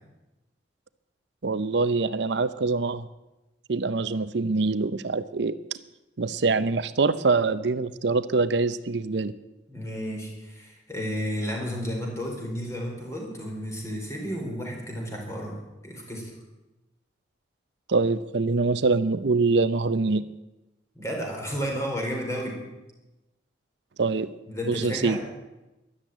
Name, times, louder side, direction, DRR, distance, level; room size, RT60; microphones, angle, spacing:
voice 1, 1.4-3.1 3.7-5.6 6.2-9.3 17.9-20.3 24.0-24.3 24.7-25.2, right 3 dB, 65° right, 14 dB, 0.6 m, -24 dB
voice 2, 9.7-16.3 20.9-22.6 24.5-25.2, equal, 15° left, 0 dB, 4.5 m, -32 dB
13.5 x 11.5 x 9.2 m, 1.0 s
head